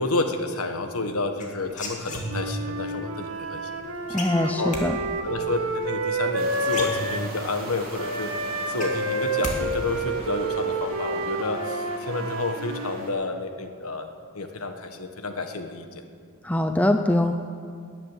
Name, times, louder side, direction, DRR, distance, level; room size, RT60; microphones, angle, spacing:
voice 1, 0.0-4.7 5.2-16.0, left 3 dB, 70° left, 6 dB, 1.4 m, -30 dB
sound 1, 1.4-2.7 4.2-4.8 6.3-6.4 6.7-7.5 7.9-8.0 8.3-9.6 9.8-10.3, left 1 dB, 35° left, 2.5 m, -33 dB
Wind instrument woodwind instrument, 2.2-7.3 8.0-12.9, right 2 dB, 80° right, 1.7 m, -29 dB
voice 2, 4.1-5.0 16.4-17.3, left 1 dB, 5° left, 6 dB, 0.5 m, -22 dB
sound 2, 6.4-13.1, right 2 dB, 40° right, 3.2 m, -41 dB
14.0 x 10.0 x 9.8 m, 2.2 s
head